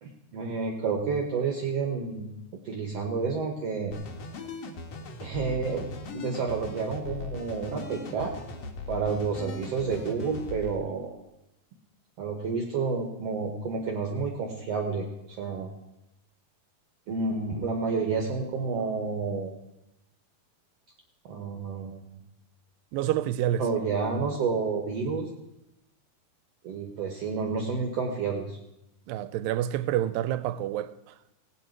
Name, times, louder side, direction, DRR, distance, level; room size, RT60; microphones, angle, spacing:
voice 1, 0.0-2.3 2.6-3.9 5.2-5.9 6.1-8.3 8.9-11.1 12.2-15.7 17.1-19.5 21.3-22.2 23.6-25.3 26.6-28.6, right 4 dB, 60° right, 1.7 m, -30 dB
sound 1, 3.9-10.8, left 3 dB, 60° left, 1.8 m, -39 dB
voice 2, 22.9-23.6 29.1-30.9, right 12 dB, 85° right, 2.3 m, -28 dB
17.5 x 8.9 x 4.5 m
omnidirectional pair, 4.1 m